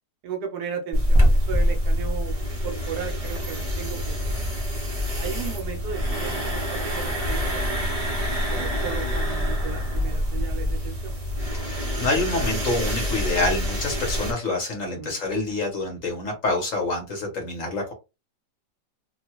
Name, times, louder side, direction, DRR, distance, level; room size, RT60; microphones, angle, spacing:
voice 1, 0.2-2.4 2.6-4.4 5.2-7.9 8.5-11.2 14.9-15.2, right 7 dB, 70° right, 4 dB, 1.2 m, -35 dB
sound 1, 0.9-14.3, equal, 30° right, 0.6 m, -25 dB
voice 2, 11.6-17.9, left 2 dB, 55° left, 2 dB, 1.1 m, -27 dB
3.0 x 2.2 x 2.9 m, 0.25 s
omnidirectional pair, 1.9 m